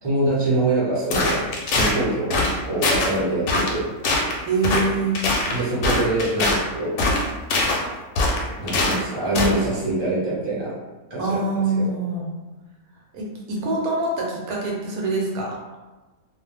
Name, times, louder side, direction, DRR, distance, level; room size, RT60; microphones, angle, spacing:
voice 1, 0.0-1.4 1.7-2.3 2.7-3.9 5.5-6.9 8.6-10.7 11.1-11.4 11.8-11.9, right 2 dB, 20° right, -8 dB, 0.7 m, -24 dB
sound 1, 1.1-2.0 2.3-2.6 2.8-3.1 3.5-3.8 4.0-4.3 4.6-4.8 5.2-6.6 7.0-7.8 8.2-9.0 9.4-9.6, left 2 dB, 70° left, 0.8 m, -22 dB
voice 2, 4.5-5.1 11.2-12.3 13.1-15.6, right 2 dB, 75° right, -2 dB, 1.1 m, -24 dB
2.5 x 2.0 x 3.3 m, 1.2 s
omnidirectional pair, 1.6 m